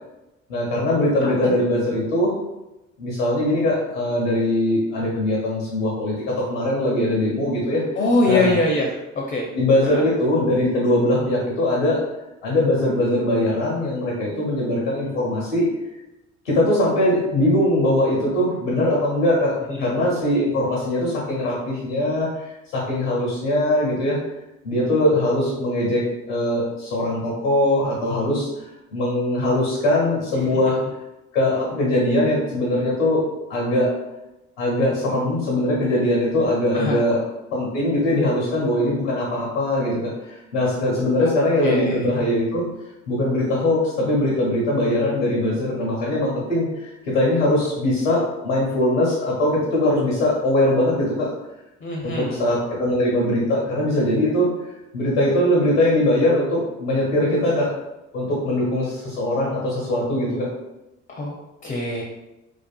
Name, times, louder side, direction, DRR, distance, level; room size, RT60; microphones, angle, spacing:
voice 1, 0.5-2.3 3.0-7.8 8.3-8.6 9.5-12.0 12.4-15.7 16.4-24.2 24.6-28.7 28.9-30.8 31.3-33.2 33.5-33.9 34.6-37.2 37.5-42.6 43.1-51.3 52.0-54.5 54.9-57.7 58.1-60.5, left 1 dB, 90° left, -4 dB, 0.6 m, -21 dB
voice 2, 8.0-8.9 9.3-9.5 9.9-10.1 19.8-20.0 30.4-30.5 36.7-37.0 41.6-42.0 51.8-52.4 61.1-61.3 61.6-62.0, left 2 dB, 25° left, 0 dB, 0.4 m, -22 dB
2.4 x 2.3 x 2.2 m, 0.96 s
hypercardioid pair, 50°, 36 cm